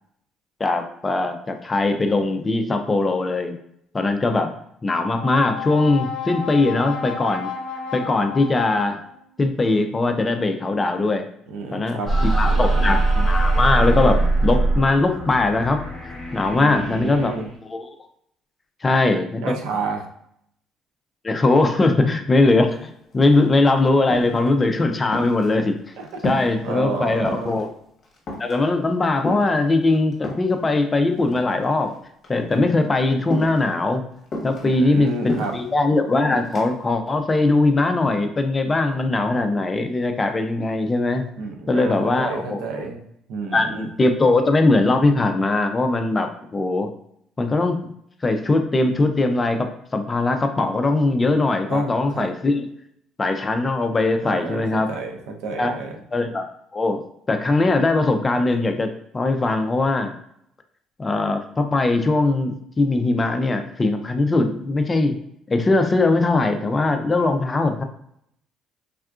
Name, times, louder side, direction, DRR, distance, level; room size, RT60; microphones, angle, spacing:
voice 1, 0.6-3.5 3.9-4.5 4.8-7.5 7.9-9.0 9.4-11.2 11.7-12.0 12.4-15.8 16.3-17.3 17.7-17.9 18.8-19.6 21.2-25.7 26.2-27.7 28.4-31.9 32.3-34.0 34.4-41.2 41.7-42.7 43.5-46.9 47.4-47.8 48.2-49.6 49.9-52.6 53.2-54.9 55.6-55.7 56.1-56.4 56.7-57.0 57.3-58.9 59.1-60.1 61.0-65.2 65.5-67.8, left 2 dB, 20° left, 6 dB, 0.3 m, -20 dB
Brass instrument, 4.8-9.2, left 6 dB, 70° left, 0.6 m, -33 dB
voice 2, 11.5-12.1 12.4-13.0 16.5-17.5 19.4-20.0 26.0-27.6 34.6-35.6 41.4-43.0 43.3-43.9 51.7-51.9 52.1-52.3 54.2-56.0, right 4 dB, 85° right, 3 dB, 0.5 m, -31 dB
sound 1, 12.1-17.5, right 2 dB, ahead, 1.0 m, -21 dB
sound 2, 22.7-22.8 23.0-23.7 24.1-24.5 24.8-26.6 26.9-27.7 28.0-28.6 29.2-30.6 31.2-32.0 32.2-32.6 33.3-33.7 34.3-35.7 36.3-36.7, left 1 dB, 40° left, 0.9 m, -32 dB
3.5 x 2.3 x 2.3 m, 0.72 s
cardioid pair, 130°, 0 cm